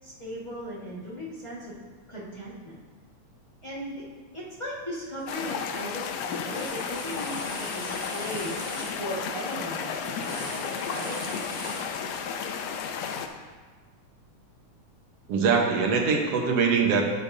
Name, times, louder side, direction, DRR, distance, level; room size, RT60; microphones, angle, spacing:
voice 1, 0.0-1.7 2.1-2.8 3.6-4.0 4.3-11.2, equal, 25° left, -8 dB, 0.7 m, -37 dB
sound 1, 5.2-5.5 5.8-12.4, right 2 dB, 35° right, 1.8 m, -41 dB
sound 2, 5.3-13.3, left 6 dB, 80° left, 1.5 m, -33 dB
voice 2, 15.3-17.0, right 5 dB, 65° right, 1 dB, 1.9 m, -23 dB
13.0 x 6.7 x 2.7 m, 1.4 s
omnidirectional pair, 3.5 m